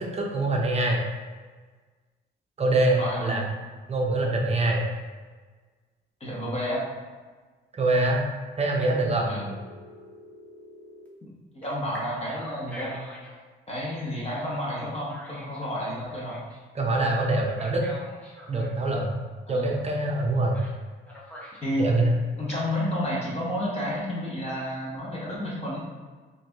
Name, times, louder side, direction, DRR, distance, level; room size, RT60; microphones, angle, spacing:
voice 1, 0.1-1.0 2.6-3.4 3.9-4.8 7.7-8.2 8.6-9.3 16.7-17.8 18.5-19.2 19.5-20.6 21.8-22.1, right 2 dB, 30° right, 0 dB, 0.7 m, -24 dB
voice 2, 3.0-3.4 6.2-6.8 9.3-9.5 11.5-13.0 13.7-16.4 19.5-19.7 21.6-21.9 22.4-25.8, equal, 30° left, -6 dB, 1.4 m, -30 dB
Telephone, 8.8-11.1 11.6-13.4 14.3-16.6 17.4-18.8 20.5-20.8 21.1-21.9 22.3-22.8, left 1 dB, 5° left, 1.0 m, -44 dB
4.3 x 2.7 x 2.9 m, 1.4 s
cardioid pair, 90°, 20 cm